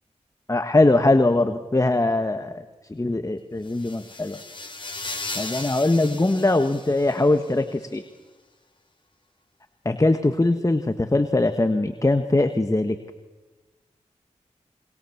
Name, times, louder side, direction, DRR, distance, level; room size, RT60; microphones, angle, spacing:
voice 1, 0.5-2.6 2.9-4.4 5.3-8.0 9.8-13.0, left 2 dB, 25° left, 8 dB, 1.5 m, -21 dB
sound 1, 3.6-7.5, left 2 dB, 40° left, 4.1 m, -36 dB
26.0 x 23.5 x 7.3 m, 1.2 s
cardioid pair, 45°, 13 cm